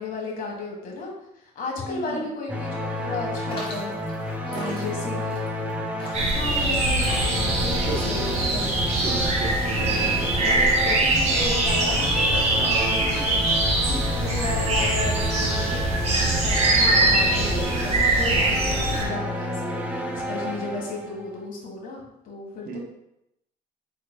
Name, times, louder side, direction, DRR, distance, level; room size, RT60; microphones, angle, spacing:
voice 1, 0.0-5.4 6.2-8.8 9.7-10.1 10.4-13.5 14.1-22.8, left 3 dB, 55° left, -1 dB, 1.4 m, -34 dB
voice 2, 1.8-2.2 4.5-5.1 7.7-8.1 8.8-10.4 12.5-13.3 13.9-14.1 22.7-22.8, right 3 dB, 60° right, 3 dB, 0.8 m, -35 dB
sound 1, 2.5-21.4, left 1 dB, 10° right, 0.6 m, -31 dB
sound 2, 3.5-9.4, left 1 dB, 30° left, 1.6 m, -41 dB
sound 3, 6.1-19.0, right 2 dB, 40° right, 1.3 m, -23 dB
4.9 x 4.3 x 2.2 m, 0.84 s
cardioid pair, 110°, 17 cm